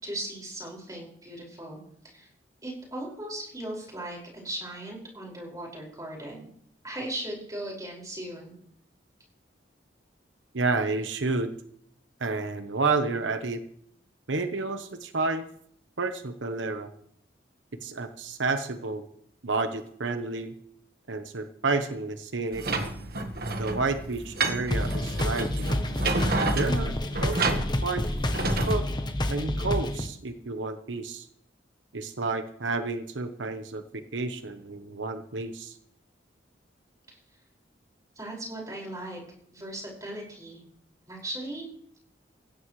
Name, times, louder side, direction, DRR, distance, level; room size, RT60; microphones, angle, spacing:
voice 1, 0.0-2.3 2.6-6.5 6.8-8.6 37.1-37.2 38.2-39.2 39.5-40.6 41.1-41.7, right 1 dB, 20° right, -2 dB, 5.7 m, -38 dB
voice 2, 10.5-11.6 12.2-13.6 14.3-15.5 16.0-16.9 17.8-19.1 19.4-20.5 21.1-22.7 23.6-25.7 26.4-28.1 28.7-28.9 29.3-31.3 31.9-35.8, right 3 dB, 90° right, 7 dB, 1.1 m, -30 dB
sound 1, 22.5-28.7, right 3 dB, 55° right, 1.6 m, -30 dB
sound 2, 24.7-30.1, left 1 dB, 25° left, 1.0 m, -29 dB
18.5 x 16.0 x 3.3 m, 0.66 s
head